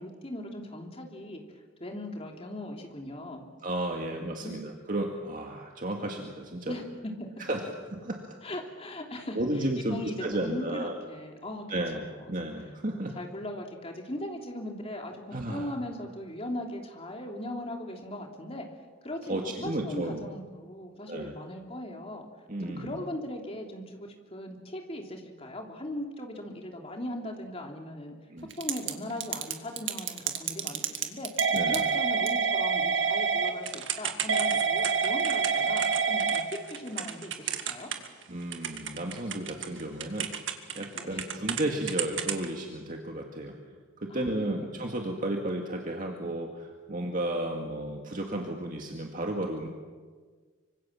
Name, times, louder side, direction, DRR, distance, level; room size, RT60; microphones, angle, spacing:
voice 1, 0.0-1.4 1.8-3.4 4.1-4.6 6.7-7.3 8.4-9.4 9.8-11.8 12.2-12.3 13.1-18.7 19.0-22.2 22.8-28.1 28.6-31.3 31.6-37.9 40.9-41.2 44.1-44.7, left 1 dB, 30° left, 2 dB, 3.2 m, -39 dB
voice 2, 3.6-6.8 7.4-7.6 7.9-8.4 9.4-11.0 11.7-13.1 15.3-15.7 19.3-20.3 21.1-21.3 22.5-23.0 28.3-28.5 31.5-31.8 38.3-40.3 40.8-43.6 44.0-49.7, right 1 dB, 40° right, 1 dB, 2.1 m, -33 dB
Typing / Telephone, 28.5-28.9 29.2-38.2 38.5-41.6 41.9-42.4, right 6 dB, 65° right, 2.1 m, -27 dB
25.5 x 25.0 x 7.5 m, 1.5 s
head